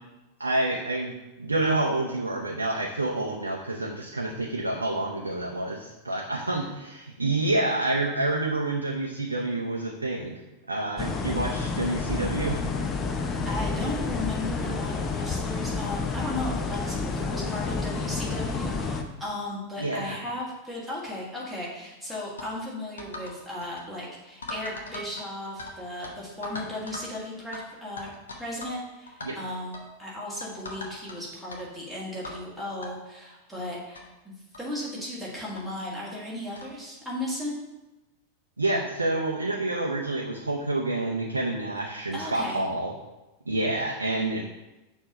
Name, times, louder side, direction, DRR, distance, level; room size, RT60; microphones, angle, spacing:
voice 1, 0.4-1.1 1.4-10.4 10.7-12.7 19.8-20.1 29.2-29.4 38.6-42.9 43.5-44.4, right 2 dB, 80° right, 0 dB, 0.5 m, -28 dB
sound 1, 11.0-19.0, left 4 dB, 25° left, 0.5 m, -30 dB
voice 2, 13.3-28.1 28.4-37.5 42.1-42.6, left 1 dB, ahead, -6 dB, 1.8 m, -36 dB
sound 2, 22.4-22.5 23.0-23.4 23.6-23.8 24.4-25.7 26.0-26.1 26.4-27.1 27.5-27.6 28.0-28.8 29.1-29.3 29.7-29.9 30.4-31.2 31.5-31.6 32.2-32.4 32.8-32.9 33.6-33.7 33.9-34.0 34.5-34.7 35.6-35.7 36.5-36.7, left 2 dB, 70° left, 0.8 m, -39 dB
6.5 x 3.0 x 5.0 m, 1.0 s
figure-of-eight pair, 90°, 0 cm